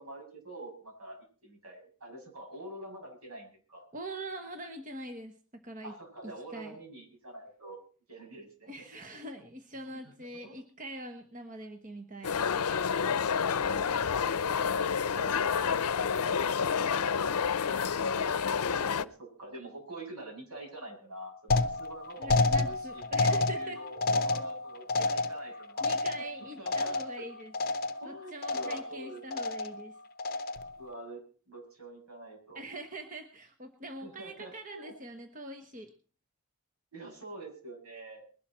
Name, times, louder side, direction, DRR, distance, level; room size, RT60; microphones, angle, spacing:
voice 1, 0.0-3.8 5.8-7.8 8.1-8.8 9.8-10.1 10.4-10.6 13.0-16.4 18.7-25.9 26.6-27.3 28.0-29.4 30.8-32.6 34.0-34.9 36.9-38.4, right 2 dB, 80° right, 0 dB, 7.1 m, -46 dB
voice 2, 3.9-5.9 6.2-6.8 8.7-12.4 22.2-23.8 25.0-25.1 25.5-27.5 28.0-30.0 32.5-35.9, right 1 dB, 35° right, 6 dB, 1.1 m, -43 dB
sound 1, 12.2-19.0, left 6 dB, 85° left, 0.6 m, -29 dB
sound 2, 21.5-27.3 27.5-28.1 28.4-29.0 29.3-29.8 30.2-30.7, left 2 dB, 40° left, 0.7 m, -30 dB
20.5 x 12.0 x 4.3 m, 0.40 s
head